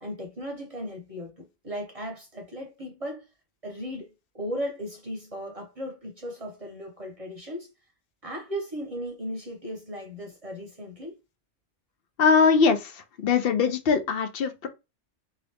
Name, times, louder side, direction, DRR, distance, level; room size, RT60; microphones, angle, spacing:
voice 1, 0.0-3.3 3.6-7.7 8.2-11.2, equal, 35° right, 0.8 m, -36 dB
voice 2, 12.2-14.7, left 5 dB, 60° left, 0.8 m, -22 dB
2.8 x 2.6 x 3.3 m
omnidirectional pair, 1.2 m